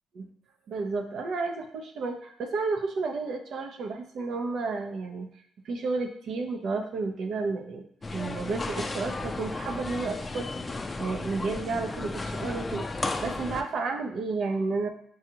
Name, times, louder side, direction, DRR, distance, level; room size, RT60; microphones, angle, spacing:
voice 1, 0.7-5.3 5.6-7.9 8.1-10.5 11.0-14.9, right 3 dB, 65° right, 5 dB, 0.6 m, -31 dB
sound 1, 8.0-13.6, left 2 dB, 25° left, 0.4 m, -34 dB
6.1 x 2.4 x 2.8 m, 0.66 s
cardioid pair, 90°, 0 cm